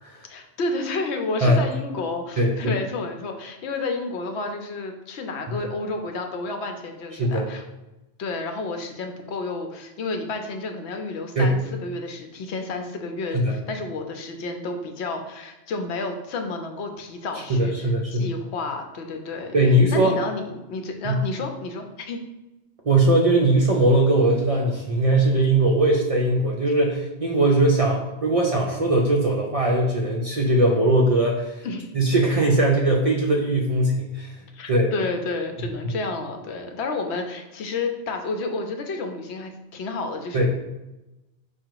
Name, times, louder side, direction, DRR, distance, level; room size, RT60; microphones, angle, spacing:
voice 1, 0.3-7.6 8.2-19.5 19.9-22.2 31.6-31.9 34.5-40.5, left 3 dB, 75° left, 4 dB, 0.9 m, -31 dB
voice 2, 2.4-2.7 7.2-7.5 11.4-11.6 13.3-13.6 17.5-18.3 19.5-20.1 21.0-21.2 22.8-31.7 31.9-34.4 34.7-34.9 40.3-40.5, right 1 dB, 45° right, -1 dB, 0.4 m, -20 dB
4.9 x 2.3 x 4.6 m, 0.99 s
omnidirectional pair, 1.1 m